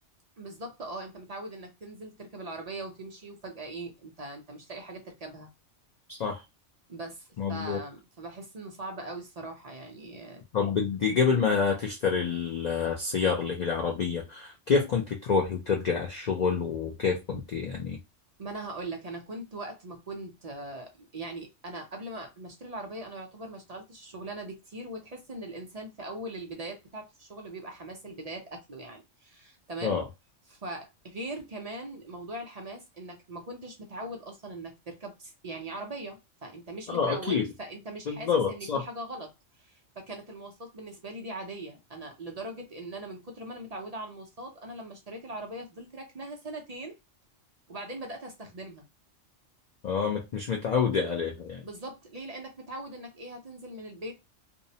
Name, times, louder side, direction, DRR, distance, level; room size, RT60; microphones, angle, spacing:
voice 1, 0.4-5.5 6.9-10.4 18.4-30.1 30.5-39.3 39.6-47.0 47.7-48.9 51.6-54.1, right 2 dB, 45° right, 0.5 m, -40 dB
voice 2, 6.1-6.4 7.4-7.8 10.5-18.0 29.8-30.0 36.9-37.5 38.1-38.8 49.8-51.6, left 6 dB, 65° left, 0.4 m, -27 dB
2.6 x 2.0 x 2.6 m
omnidirectional pair, 1.3 m